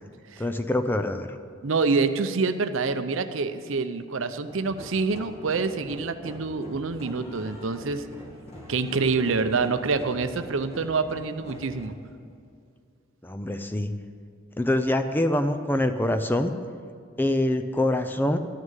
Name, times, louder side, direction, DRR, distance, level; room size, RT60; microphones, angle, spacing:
voice 1, 0.4-1.4 13.2-13.9 14.6-16.5 17.2-18.4, left 1 dB, 10° left, 8 dB, 0.4 m, -25 dB
voice 2, 1.6-8.0 8.7-11.9, right 4 dB, 75° right, 10 dB, 0.7 m, -26 dB
sound 1, 4.5-11.9, equal, 30° left, 2.0 m, -43 dB
13.0 x 6.4 x 9.1 m, 2.4 s
head